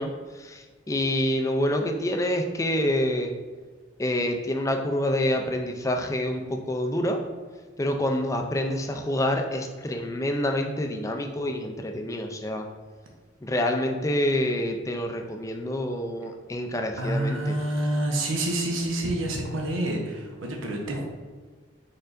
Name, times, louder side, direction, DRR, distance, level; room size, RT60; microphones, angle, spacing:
voice 1, 0.0-3.3 4.0-7.2 7.8-12.7 13.4-17.5, left 1 dB, 15° left, 4 dB, 0.4 m, -27 dB
voice 2, 17.0-21.1, right 1 dB, 90° right, 0 dB, 0.9 m, -28 dB
4.6 x 4.5 x 2.5 m, 1.5 s
head